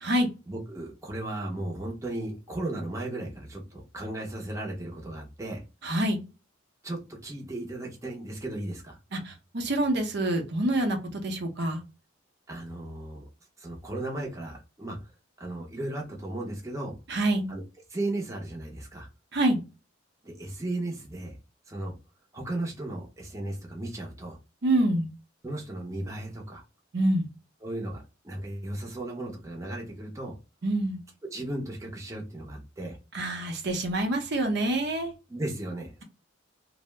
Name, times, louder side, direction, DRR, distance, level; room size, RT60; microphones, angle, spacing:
voice 1, 0.5-5.6 6.8-9.0 12.5-13.3 13.6-15.0 15.4-16.9 17.5-17.6 17.9-19.1 20.2-21.4 21.7-21.9 22.3-24.4 25.4-26.6 27.6-30.4 31.2-33.0 35.3-36.0, right 1 dB, 15° right, 0.6 m, -35 dB
voice 2, 5.8-6.2 9.1-11.8 17.1-17.5 19.3-19.6 24.6-25.1 26.9-27.3 30.6-31.0 33.1-35.1, right 1 dB, 60° right, 0.7 m, -26 dB
2.7 x 2.0 x 3.2 m
head